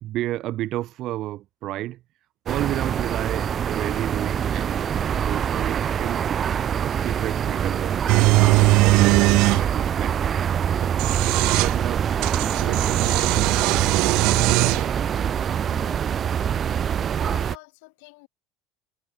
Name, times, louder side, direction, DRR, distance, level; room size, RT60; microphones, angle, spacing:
voice 1, 0.0-2.0 2.4-6.3 6.8-8.1 8.8-10.2 11.5-12.7, right 15 dB, 45° right, 1.5 m, -32 dB
sound 1, 2.5-17.6, right 8 dB, 25° right, 0.7 m, -25 dB
sound 2, 8.1-9.6 10.8-11.7 12.2-14.9, right 25 dB, 60° right, 0.3 m, -20 dB
voice 2, 15.6-16.5 16.8-16.9 17.2-18.3, left 30 dB, 75° left, 5.8 m, -48 dB
cardioid pair, 165°, 0 cm